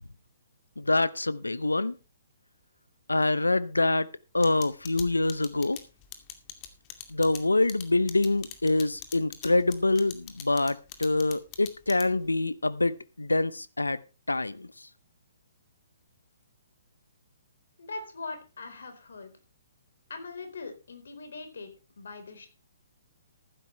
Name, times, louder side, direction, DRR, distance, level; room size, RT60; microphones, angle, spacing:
voice 1, 0.8-1.9 3.1-4.1 4.3-5.8 7.1-14.0 14.3-14.7, left 2 dB, 85° left, 0.7 m, -25 dB
sound 1, 4.4-12.3, left 12 dB, 30° left, 2.3 m, -42 dB
voice 2, 17.8-19.3 20.1-22.5, left 3 dB, 65° left, 4.1 m, -41 dB
14.5 x 12.5 x 3.3 m
figure-of-eight pair, 125°, 0 cm